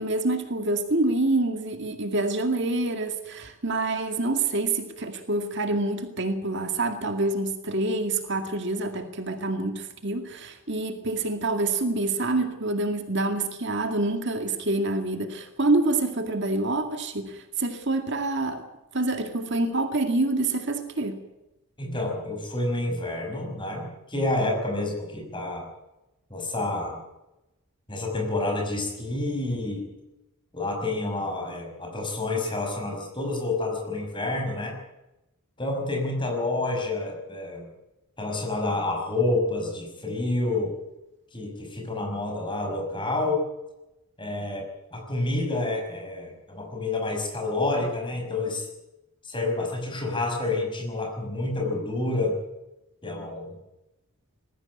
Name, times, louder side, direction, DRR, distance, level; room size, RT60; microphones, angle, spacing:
voice 1, 0.0-18.6 18.9-21.2, right 2 dB, 55° right, 6 dB, 2.2 m, -27 dB
voice 2, 21.8-25.7 26.3-27.0 27.9-29.9 30.5-34.8 35.6-37.7 38.2-40.7 41.3-43.5 44.2-48.7 49.2-52.3 53.0-53.5, left 2 dB, 20° left, 2 dB, 5.9 m, -28 dB
20.5 x 15.0 x 9.7 m, 0.96 s
head